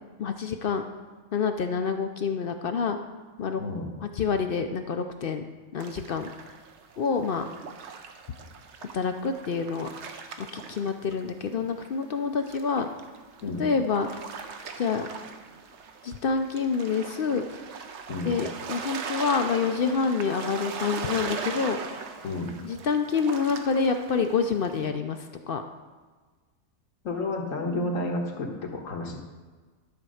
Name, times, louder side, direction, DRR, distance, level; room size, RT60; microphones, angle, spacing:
voice 1, 0.2-0.8 1.3-3.0 3.4-3.6 4.2-5.4 5.7-6.3 7.0-7.4 8.9-9.9 10.4-12.9 13.6-14.1 14.8-15.1 16.0-17.5 18.3-21.8 22.6-25.6, left 5 dB, 55° left, 7 dB, 0.6 m, -27 dB
sound 1, 5.8-11.5 11.8-24.9, right 5 dB, 60° right, 1.0 m, -40 dB
voice 2, 27.0-29.2, left 2 dB, 80° left, 1 dB, 1.7 m, -31 dB
12.0 x 4.4 x 6.3 m, 1.4 s
omnidirectional pair, 1.4 m